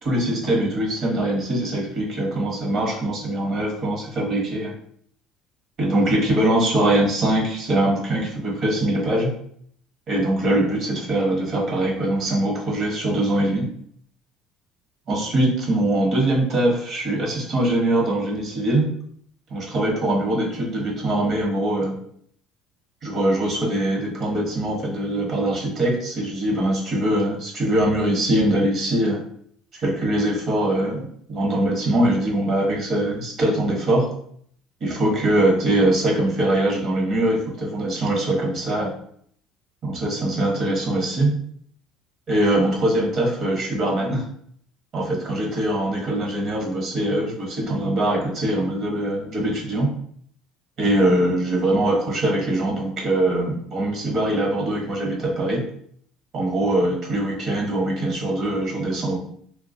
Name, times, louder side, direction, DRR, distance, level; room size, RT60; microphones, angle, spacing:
voice 1, 0.0-4.7 5.8-9.3 10.1-13.7 15.1-18.9 19.5-21.9 23.0-29.2 29.8-34.1 34.8-38.9 39.8-41.3 42.3-44.2 44.9-49.9 50.8-55.7 56.3-59.2, right 1 dB, 50° right, -1 dB, 1.0 m, -22 dB
3.1 x 2.2 x 2.6 m, 0.64 s
supercardioid pair, 105°, 0 cm